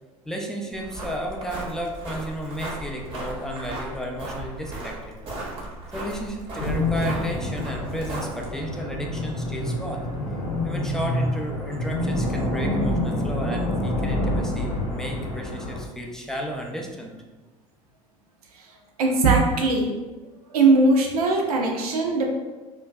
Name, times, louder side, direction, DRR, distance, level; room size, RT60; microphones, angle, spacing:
voice 1, 0.3-5.1 5.9-10.0 10.6-17.2, equal, 5° left, 0 dB, 0.3 m, -33 dB
sound 1, 0.7-8.7, right 2 dB, 30° right, 0.8 m, -36 dB
sound 2, 6.6-15.8, left 1 dB, 85° left, 0.6 m, -27 dB
voice 2, 19.0-19.9 20.5-22.3, right 3 dB, 80° right, 0 dB, 0.5 m, -20 dB
2.6 x 2.1 x 2.2 m, 1.2 s
hypercardioid pair, 70°, 19 cm